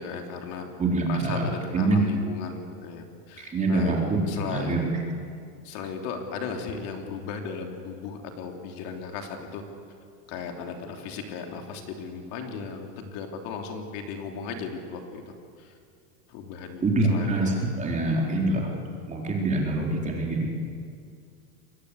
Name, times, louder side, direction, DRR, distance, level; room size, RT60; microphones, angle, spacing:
voice 1, 0.0-0.7 1.1-4.0 4.2-4.8 5.6-9.6 10.3-15.7 16.3-16.8 17.1-17.4, left 5 dB, 50° left, 3 dB, 3.3 m, -36 dB
voice 2, 0.8-1.5 1.7-2.0 3.4-4.2 4.5-4.9 16.8-18.7 19.1-20.5, right 2 dB, 15° right, -1 dB, 4.0 m, -25 dB
27.0 x 22.0 x 8.3 m, 2.3 s
supercardioid pair, 160°, 47 cm